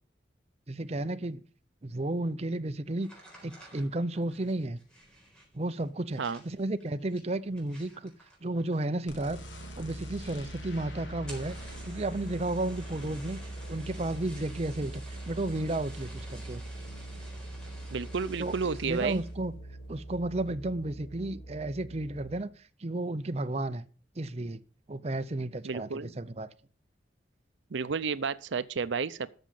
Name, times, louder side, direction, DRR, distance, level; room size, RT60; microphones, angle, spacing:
voice 1, 0.7-1.4 1.8-3.1 3.4-4.8 5.5-8.1 8.4-9.4 9.8-11.6 11.8-13.4 13.7-16.6 18.4-18.5 18.8-19.5 19.9-22.5 22.8-23.8 24.2-24.6 24.9-26.5, right 2 dB, 35° right, 0.6 m, -33 dB
Light match, 3.0-9.1 9.4-9.9 10.2-10.3 10.6-10.7 11.1-19.5 19.9-20.3 20.7-21.1, right 1 dB, 5° left, 4.1 m, -52 dB
sound 1, 9.1-22.4, right 1 dB, 80° left, 3.1 m, -42 dB
voice 2, 17.9-19.2 25.6-26.1 27.7-29.3, right 5 dB, 75° right, 0.6 m, -31 dB
13.0 x 6.3 x 7.0 m
head